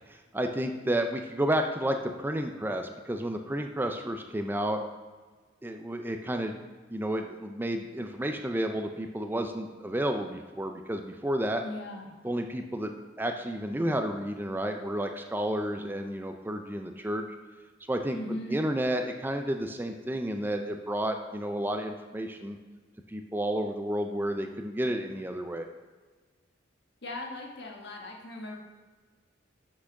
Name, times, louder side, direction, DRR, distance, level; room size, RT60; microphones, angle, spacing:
voice 1, 0.1-4.8 5.6-6.6 6.9-11.6 12.2-17.2 17.9-18.2 18.5-22.6 23.1-25.6, right 1 dB, 10° right, 5 dB, 0.5 m, -31 dB
voice 2, 11.6-12.1 18.1-18.7 27.0-28.6, left 1 dB, 65° left, 0 dB, 1.5 m, -38 dB
6.1 x 6.0 x 6.4 m, 1.4 s
head